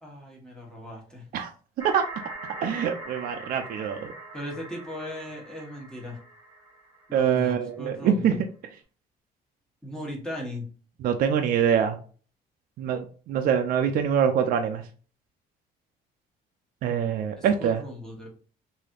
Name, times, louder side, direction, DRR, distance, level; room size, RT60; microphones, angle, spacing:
voice 1, 0.0-1.3 4.3-6.2 7.1-8.4 9.8-10.7 17.4-18.3, left 1 dB, 5° left, -2 dB, 1.2 m, -37 dB
sound 1, 1.8-7.5, right 2 dB, 25° right, 1.5 m, -42 dB
voice 2, 2.6-4.1 7.1-8.3 11.0-12.0 12.8-14.8 16.8-17.8, right 8 dB, 60° right, 5 dB, 0.4 m, -24 dB
3.2 x 2.7 x 2.4 m, 0.39 s
cardioid pair, 110°, 17 cm